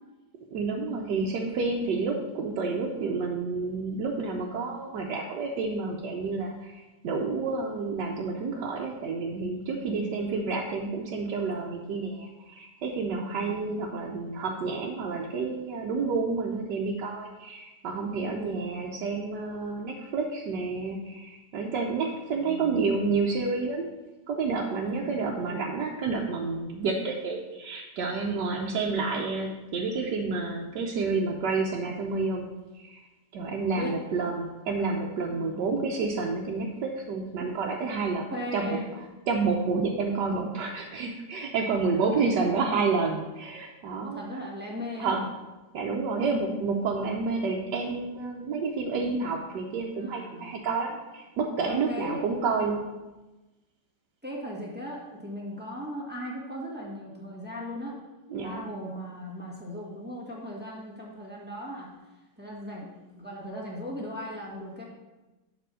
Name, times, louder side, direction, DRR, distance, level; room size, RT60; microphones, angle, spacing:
voice 1, 0.5-23.9 24.3-32.4 32.7-33.0 33.3-38.2 38.5-38.8 39.3-44.2 45.0-45.2 45.7-52.8 58.3-58.6, right 4 dB, 85° right, -1 dB, 1.4 m, -29 dB
voice 2, 9.7-10.3 13.1-13.6 18.3-18.5 22.3-22.8 24.8-25.2 28.3-28.6 33.7-34.0 35.4-35.8 38.3-38.9 41.9-42.6 44.0-45.3 49.9-50.6 51.6-52.2 54.2-58.0 58.4-62.0 62.4-64.8, equal, 5° right, -4 dB, 1.6 m, -38 dB
6.8 x 5.2 x 6.2 m, 1.1 s
omnidirectional pair, 1.8 m